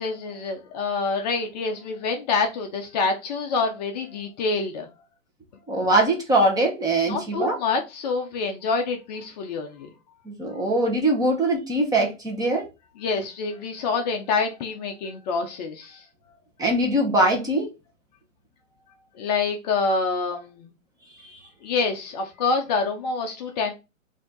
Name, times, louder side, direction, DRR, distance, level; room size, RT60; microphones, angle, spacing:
voice 1, 0.0-4.9 7.1-9.9 13.0-16.1 19.1-20.7 21.6-23.7, left 4 dB, 35° left, 0.7 m, -27 dB
voice 2, 5.7-7.6 10.3-12.6 16.6-17.7 21.2-21.4, right 1 dB, 10° right, 1.0 m, -22 dB
4.9 x 2.7 x 3.7 m
hypercardioid pair, 140°, 39 cm